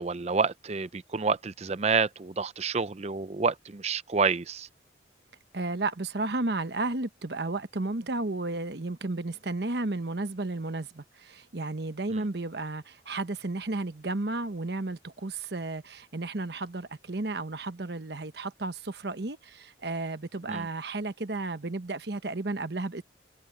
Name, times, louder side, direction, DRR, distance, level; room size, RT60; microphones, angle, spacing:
voice 1, 0.0-4.7 12.1-12.2 20.5-20.7, right 5 dB, 35° right, 0.5 m, -28 dB
voice 2, 5.5-23.0, right 2 dB, 60° right, 1.1 m, -33 dB
head